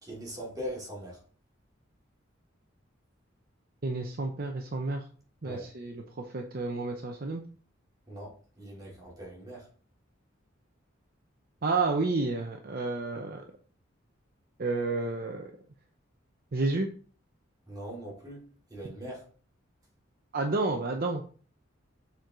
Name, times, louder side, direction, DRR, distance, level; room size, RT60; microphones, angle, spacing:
voice 1, 0.0-1.2 5.4-5.6 8.1-9.6 17.7-18.4 18.7-19.2, equal, 20° right, -5 dB, 3.4 m, -41 dB
voice 2, 3.8-5.0 5.4-7.4 11.6-13.4 14.6-15.5 16.5-16.9 20.3-21.2, right 3 dB, 50° right, 3 dB, 0.7 m, -30 dB
7.0 x 4.6 x 3.8 m, 0.42 s
head